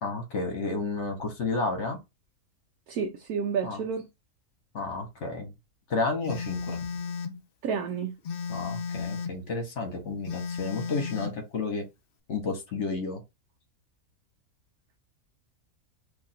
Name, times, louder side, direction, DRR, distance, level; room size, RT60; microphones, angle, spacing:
voice 1, 0.0-2.0 3.6-3.8 4.7-5.5 5.9-6.8 8.5-11.8 12.3-13.2, left 3 dB, 55° left, 1.2 m, -31 dB
voice 2, 2.9-4.0 7.6-8.1, right 6 dB, 85° right, 1.1 m, -30 dB
Telephone, 6.2-7.4 8.2-9.4 10.2-11.4, left 5 dB, 85° left, 0.5 m, -34 dB
3.0 x 2.4 x 4.1 m
omnidirectional pair, 1.5 m